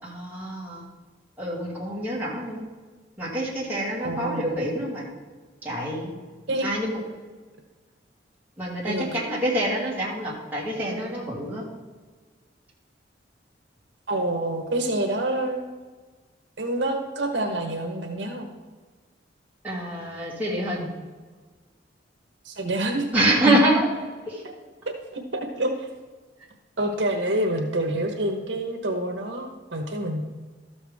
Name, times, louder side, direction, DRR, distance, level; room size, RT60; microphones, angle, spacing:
voice 1, 0.0-0.8 1.4-2.6 3.2-5.1 5.6-6.1 6.6-7.0 8.6-11.6 19.6-20.9 23.1-23.9 24.3-24.4, right 1 dB, 10° right, -7 dB, 2.4 m, -26 dB
voice 2, 4.0-4.5 6.5-6.7 8.9-9.2 14.1-15.6 16.6-18.5 22.4-23.1 23.4-23.6 24.8-25.9 26.8-30.2, right 1 dB, 75° right, 3 dB, 1.2 m, -27 dB
13.0 x 7.1 x 3.6 m, 1.4 s
head